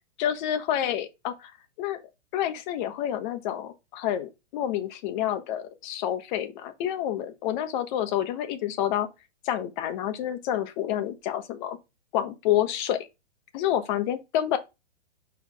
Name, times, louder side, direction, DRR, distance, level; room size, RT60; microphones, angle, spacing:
voice 1, 0.2-1.5 1.8-2.0 2.3-9.1 9.4-11.8 12.1-13.0 13.5-14.6, left 11 dB, 40° left, 1.2 m, -28 dB
5.7 x 4.8 x 3.5 m
hypercardioid pair, 130°, 35 cm